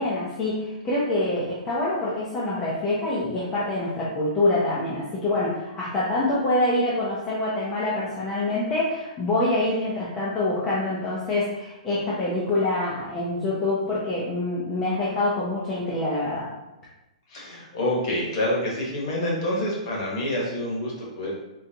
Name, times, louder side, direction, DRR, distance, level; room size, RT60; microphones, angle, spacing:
voice 1, 0.0-16.5, left 2 dB, 15° left, -8 dB, 0.5 m, -25 dB
voice 2, 17.3-21.3, left 1 dB, 35° left, -3 dB, 1.1 m, -27 dB
3.8 x 3.3 x 2.7 m, 0.98 s
hypercardioid pair, 175°, 4 cm